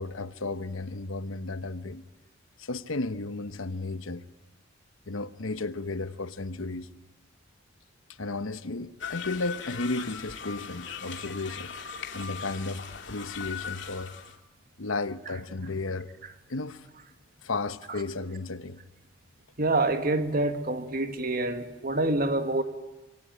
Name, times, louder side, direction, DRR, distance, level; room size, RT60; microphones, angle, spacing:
voice 1, 0.0-2.0 2.6-4.3 5.1-6.9 8.2-11.7 12.1-14.1 14.8-16.1 16.5-16.9 17.4-18.8, left 3 dB, 75° left, 1.0 m, -34 dB
sound 1, 9.0-14.4, left 7 dB, 60° left, 2.5 m, -39 dB
voice 2, 19.6-22.6, right 2 dB, 45° right, 1.8 m, -26 dB
26.0 x 23.5 x 9.0 m
head